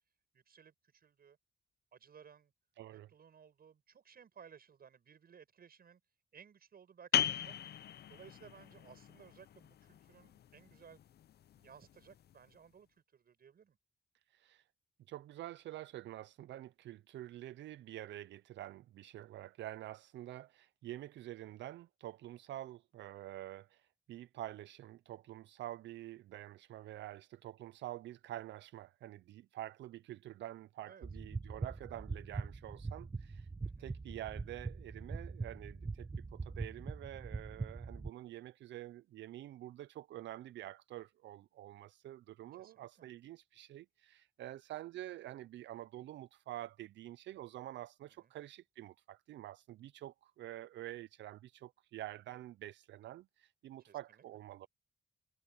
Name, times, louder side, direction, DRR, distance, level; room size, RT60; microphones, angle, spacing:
voice 1, 0.3-1.4 1.9-2.5 2.9-6.0 6.3-7.5 8.1-11.0 11.5-13.8 30.8-31.0 33.6-33.9 42.5-43.1 48.1-48.3 53.9-54.2, right 7 dB, 55° right, 7.7 m, -59 dB
voice 2, 2.8-3.1 14.3-14.7 15.1-33.5 33.8-54.7, right 14 dB, 85° right, 0.4 m, -48 dB
sound 1, 7.1-12.5, left 10 dB, 60° left, 0.6 m, -39 dB
sound 2, 31.0-38.1, right 4 dB, 20° right, 1.3 m, -42 dB
cardioid pair, 110°, 18 cm